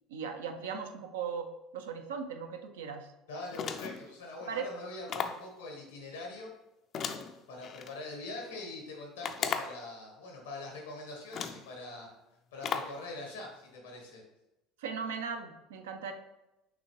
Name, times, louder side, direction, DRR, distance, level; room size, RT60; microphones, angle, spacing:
voice 1, 0.1-3.1 4.5-4.6 14.8-16.1, right 6 dB, 85° right, 6 dB, 0.5 m, -38 dB
voice 2, 3.3-6.5 7.5-12.1 12.5-14.2, left 2 dB, 85° left, 0 dB, 1.2 m, -43 dB
Julian's Door - turn doorknob with latch, 3.5-4.1 5.1-5.5 6.9-7.9 9.2-9.9 10.8-10.9 11.3-11.7 12.6-13.0, left 6 dB, 50° left, 0.4 m, -36 dB
5.9 x 2.8 x 3.1 m, 0.96 s
hypercardioid pair, 75°, 0 cm